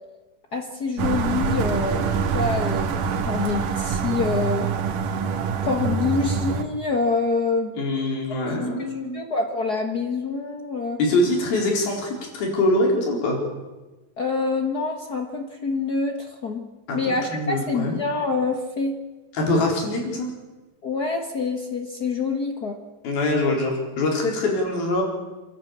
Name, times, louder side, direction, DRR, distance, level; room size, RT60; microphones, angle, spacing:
voice 1, 0.5-4.7 5.6-7.8 8.3-11.0 14.2-16.6 16.9-19.0 20.8-22.8, left 4 dB, 65° left, 4 dB, 0.9 m, -26 dB
sound 1, 1.0-6.6, right 6 dB, 70° right, 2.8 m, -25 dB
voice 2, 7.8-9.2 11.0-13.4 16.9-18.0 19.3-20.3 23.0-25.0, left 2 dB, 85° left, 0 dB, 6.2 m, -23 dB
29.0 x 11.5 x 8.7 m, 1.2 s
omnidirectional pair, 4.1 m